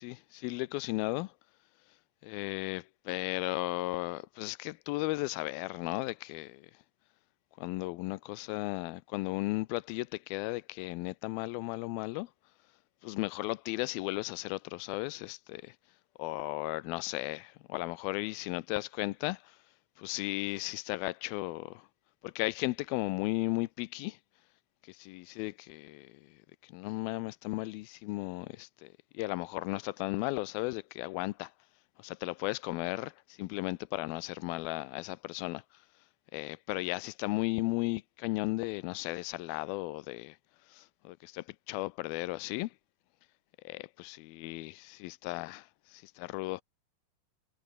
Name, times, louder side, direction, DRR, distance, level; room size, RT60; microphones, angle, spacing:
voice 1, 0.0-1.3 2.2-6.6 7.6-12.3 13.0-15.8 16.2-19.6 20.0-21.9 22.2-24.2 24.8-28.9 29.1-31.5 32.0-35.9 36.3-40.4 40.6-42.7 43.6-46.6, left 21 dB, 85° left, 2.4 m, -35 dB
omnidirectional pair, 4.3 m